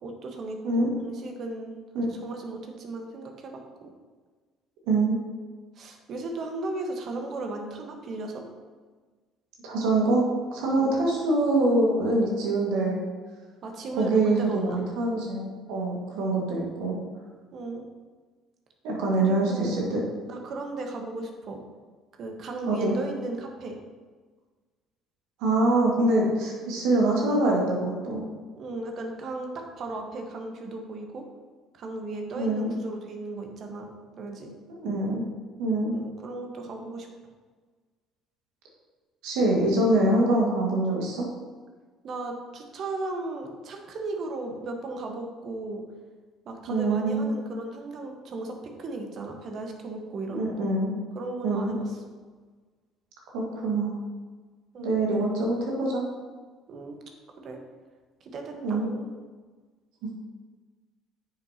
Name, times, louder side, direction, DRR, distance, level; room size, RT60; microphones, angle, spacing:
voice 1, 0.0-3.9 5.8-8.4 10.7-11.0 13.6-14.8 17.5-17.8 19.2-19.8 20.3-21.6 22.2-23.8 28.6-31.3 31.7-33.8 34.2-34.5 35.9-37.1 42.0-45.8 46.4-50.4 51.1-51.9 54.7-55.1 56.7-57.0 57.4-57.6 58.2-59.1, right 2 dB, 50° right, 3 dB, 1.3 m, -36 dB
voice 2, 4.9-5.2 9.6-10.3 10.5-13.0 14.0-17.0 18.8-20.0 22.7-23.0 25.4-28.3 32.3-32.8 34.7-35.2 35.6-36.0 39.2-41.2 46.7-47.4 50.3-51.0 51.4-51.8 53.3-54.0 54.8-56.0 58.6-58.9, right 2 dB, 70° right, -1 dB, 1.8 m, -24 dB
8.9 x 6.8 x 2.9 m, 1.4 s
hypercardioid pair, 55°, 0 cm